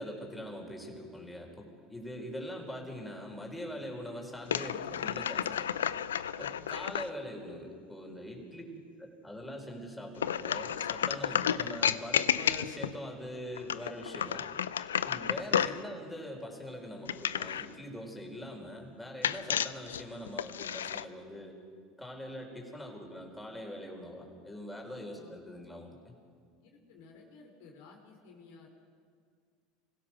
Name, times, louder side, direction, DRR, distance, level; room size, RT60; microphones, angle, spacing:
voice 1, 0.0-5.7 6.4-8.6 9.0-14.5 15.0-21.5 22.0-26.1, equal, 5° left, 0 dB, 4.8 m, -43 dB
sound 1, 4.4-7.1 10.2-13.0 13.5-15.8 17.1-17.7 19.2-21.0, left 9 dB, 90° left, 0.5 m, -32 dB
voice 2, 6.4-6.7 8.6-8.8 15.9-16.0 25.1-25.3 26.6-28.7, left 4 dB, 75° left, 1 dB, 3.9 m, -55 dB
25.5 x 16.5 x 6.2 m, 2.1 s
hypercardioid pair, 85°, 0 cm